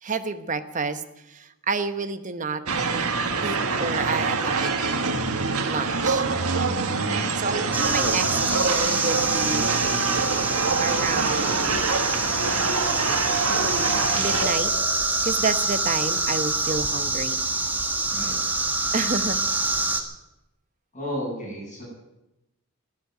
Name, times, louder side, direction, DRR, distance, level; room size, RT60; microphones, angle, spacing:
voice 1, 0.0-2.6 3.4-5.1 5.7-6.3 7.4-9.7 10.8-11.9 14.1-14.7 15.2-17.4 18.9-19.4, right 4 dB, 35° right, 9 dB, 1.0 m, -29 dB
sound 1, 2.7-14.5, right 4 dB, 80° right, 1.6 m, -25 dB
voice 2, 6.9-7.8 18.1-18.4 20.9-21.8, equal, 30° left, -10 dB, 8.0 m, -34 dB
sound 2, 7.7-20.0, right 2 dB, 10° right, 1.4 m, -26 dB
sound 3, 8.0-16.1, equal, 50° left, 5.2 m, -40 dB
13.5 x 11.5 x 9.2 m, 0.94 s
head